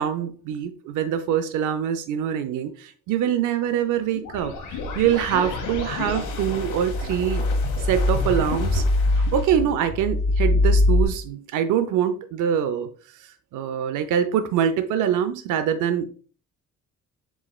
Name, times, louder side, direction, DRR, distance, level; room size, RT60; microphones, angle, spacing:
voice 1, 0.0-4.5 5.0-7.5 7.9-8.8 9.2-12.9 13.5-16.1, right 9 dB, 85° right, 0.6 m, -24 dB
sound 1, 4.2-11.0, left 2 dB, 90° left, 1.2 m, -24 dB
4.7 x 4.3 x 2.3 m
cardioid pair, 90°, 30 cm